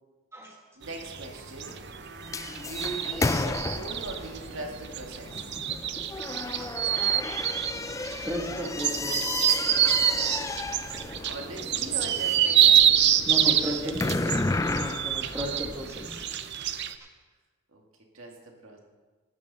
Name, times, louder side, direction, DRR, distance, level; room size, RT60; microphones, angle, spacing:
sound 1, 0.8-16.9, right 10 dB, 55° right, 0.6 m, -26 dB
voice 1, 0.8-1.8 2.6-5.6 11.3-12.9 13.5-14.6 17.7-17.8 18.1-18.8, right 2 dB, 70° right, 1 dB, 2.2 m, -40 dB
sound 2, 1.0-16.4, left 3 dB, 15° left, 0.3 m, -34 dB
sound 3, 2.7-14.4, right 1 dB, 85° right, 2.2 m, -49 dB
voice 2, 6.3-6.7 8.3-9.6 10.6-10.8 11.2-11.3 13.2-14.3 14.6-16.2 17.0-17.1, equal, 15° right, -1 dB, 1.7 m, -35 dB
14.5 x 12.5 x 4.2 m, 1.3 s
head